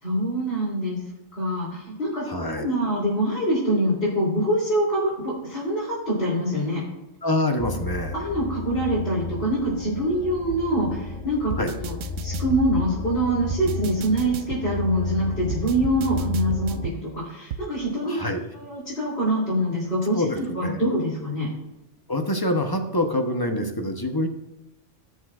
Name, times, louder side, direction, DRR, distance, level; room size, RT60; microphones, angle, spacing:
voice 1, 0.0-1.0 1.4-2.3 2.5-6.8 8.1-11.5 11.8-11.9 12.2-18.2 18.6-21.5, right 1 dB, 55° left, -9 dB, 3.7 m, -25 dB
voice 2, 2.3-2.7 7.2-8.2 11.6-11.7 18.0-18.4 20.1-20.8 22.1-24.3, left 1 dB, 20° left, 4 dB, 1.0 m, -26 dB
sound 1, 7.6-16.9, left 2 dB, 35° left, 0.6 m, -32 dB
sound 2, 10.5-10.6 11.5-12.6 13.5-14.6 15.5-17.0 17.5-17.6, right 8 dB, 85° right, 1.0 m, -33 dB
17.0 x 6.5 x 2.5 m, 0.98 s
omnidirectional pair, 1.2 m